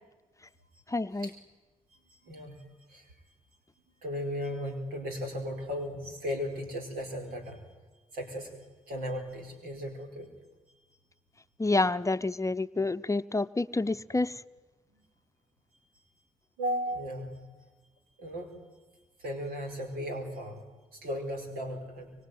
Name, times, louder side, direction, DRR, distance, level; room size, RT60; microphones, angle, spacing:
voice 1, 0.9-1.3 11.6-14.4, left 2 dB, 20° left, 11 dB, 0.8 m, -28 dB
voice 2, 4.0-7.6 8.1-8.5 8.9-10.3 16.6-17.4 18.2-18.5 19.2-20.6 20.9-22.1, equal, 80° right, 4 dB, 4.9 m, -35 dB
24.5 x 24.0 x 9.5 m, 1.2 s
hypercardioid pair, 45°, 15 cm